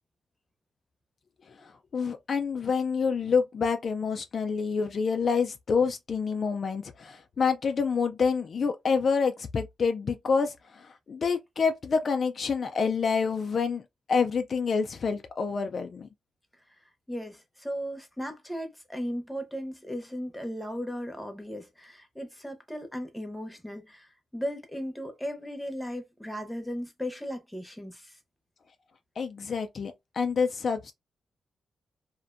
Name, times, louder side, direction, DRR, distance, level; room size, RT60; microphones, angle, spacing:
voice 1, 1.5-13.8 14.1-16.1 29.2-30.9, left 5 dB, 50° left, 0.3 m, -27 dB
voice 2, 17.1-28.2, equal, 5° left, 0.7 m, -36 dB
2.5 x 2.1 x 2.4 m
cardioid pair, 110°, 0 cm